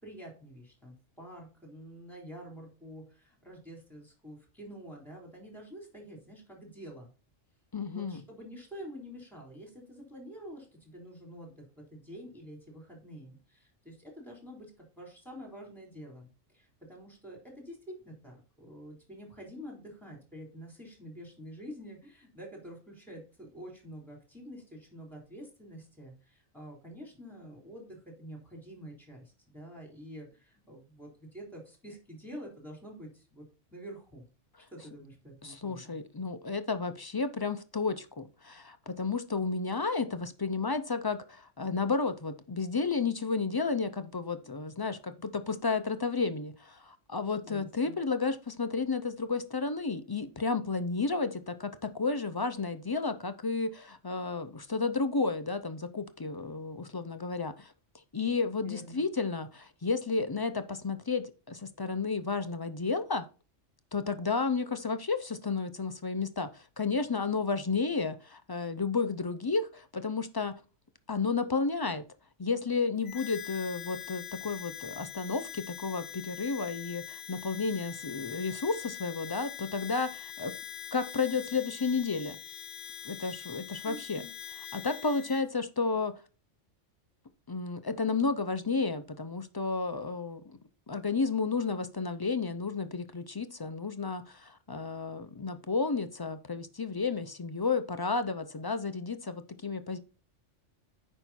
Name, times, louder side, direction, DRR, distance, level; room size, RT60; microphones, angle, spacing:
voice 1, 0.0-7.1 7.9-33.4 33.7-34.3 34.7-35.9 47.4-48.0 58.6-59.0 83.8-84.3, equal, ahead, 3.5 m, -47 dB
voice 2, 7.7-8.2 35.4-57.7 58.1-63.3 63.9-70.6 71.1-72.0 72.4-80.5 80.9-82.4 83.0-84.2 84.7-86.1 87.5-90.6 90.9-100.0, left 4 dB, 40° left, 0.3 m, -32 dB
Harmonica, 73.0-85.5, left 10 dB, 60° left, 0.9 m, -43 dB
9.0 x 5.5 x 4.2 m
omnidirectional pair, 1.3 m